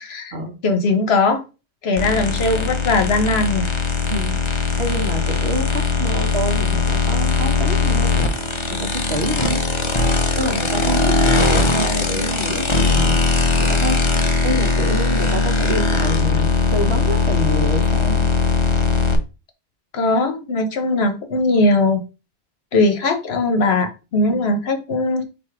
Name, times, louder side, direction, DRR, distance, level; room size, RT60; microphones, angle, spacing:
voice 1, 0.0-0.3 0.6-1.4 1.8-3.7 19.9-22.0 22.7-25.2, left 2 dB, 75° left, 6 dB, 1.1 m, -19 dB
sound 1, 2.0-19.2, left 4 dB, 35° left, 0.5 m, -19 dB
voice 2, 4.1-4.4 4.8-8.3 8.7-9.6 10.4-13.2 13.6-14.2 14.4-18.3 24.2-24.5, right 1 dB, 75° right, 5 dB, 1.2 m, -27 dB
4.2 x 2.7 x 4.6 m, 0.30 s
omnidirectional pair, 1.1 m